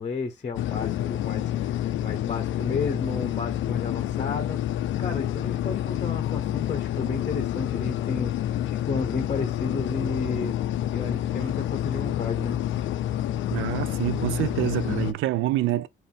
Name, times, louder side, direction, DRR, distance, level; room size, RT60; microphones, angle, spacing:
voice 1, 0.0-4.6 5.0-10.5 10.9-12.6, left 4 dB, 35° left, 0.9 m, -32 dB
sound 1, 0.6-15.1, left 12 dB, 75° left, 0.4 m, -28 dB
voice 2, 13.5-15.9, right 14 dB, 85° right, 0.4 m, -26 dB
3.9 x 2.6 x 3.4 m
cardioid pair, 90°, 20 cm